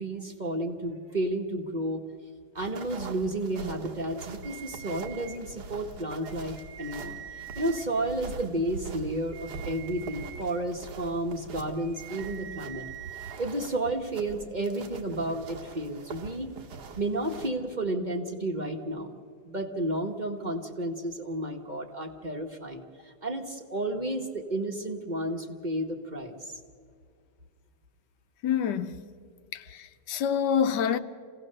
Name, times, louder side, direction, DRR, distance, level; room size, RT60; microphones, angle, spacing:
voice 1, 0.0-2.0 2.5-12.8 13.4-16.5 17.0-19.1 19.4-26.6, right 1 dB, 30° right, 1.2 m, -32 dB
sound 1, 2.6-17.5, right 4 dB, 75° right, 1.8 m, -43 dB
sound 2, 4.4-5.4 6.2-7.8 9.1-10.4 11.8-13.4, right 11 dB, 90° right, 2.0 m, -45 dB
voice 2, 28.4-28.9 29.5-31.0, left 8 dB, 90° left, 1.4 m, -27 dB
27.0 x 17.0 x 6.6 m
omnidirectional pair, 1.8 m